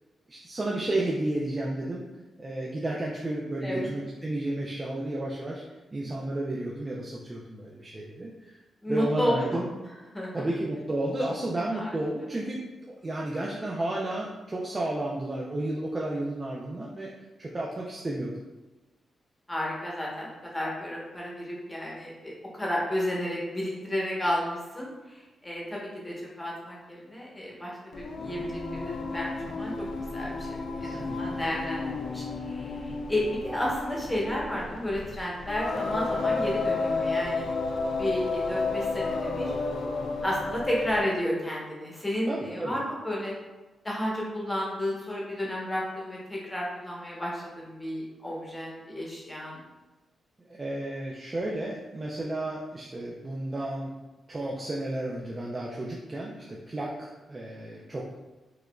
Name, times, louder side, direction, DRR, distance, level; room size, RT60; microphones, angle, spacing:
voice 1, 0.3-2.0 2.4-5.6 5.9-8.6 8.9-9.7 10.3-17.1 17.4-18.3 30.8-31.4 42.3-42.8 50.5-53.9 54.3-58.1, right 1 dB, 25° right, -3 dB, 0.4 m, -32 dB
voice 2, 8.8-9.6 10.1-10.3 11.7-11.9 19.5-29.9 30.1-37.4 38.0-39.5 40.2-43.3 43.8-49.6, left 1 dB, 15° left, -4 dB, 0.9 m, -32 dB
Singing, 27.9-41.1, left 3 dB, 70° left, 0.4 m, -32 dB
4.8 x 2.4 x 2.2 m, 1.1 s
wide cardioid pair, 120°, 0 cm